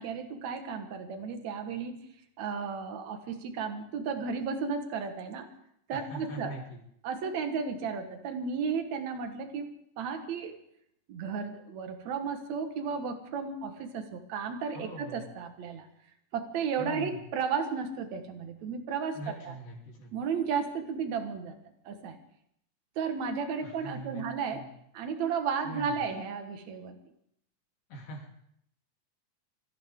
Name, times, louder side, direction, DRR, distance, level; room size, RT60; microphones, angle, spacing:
voice 1, 0.0-1.9 2.4-5.5 5.9-6.5 7.0-9.7 10.0-10.6 11.1-15.9 16.3-19.6 20.1-21.6 21.9-22.2 23.0-24.7 24.9-27.0, right 6 dB, 60° right, 6 dB, 2.6 m, -34 dB
voice 2, 5.9-6.8 14.7-15.2 16.8-17.2 19.1-20.1 23.6-24.2 24.5-24.7 25.6-25.9 27.9-28.4, right 1 dB, 70° left, -2 dB, 4.7 m, -42 dB
25.0 x 14.5 x 3.7 m, 0.72 s
omnidirectional pair, 3.9 m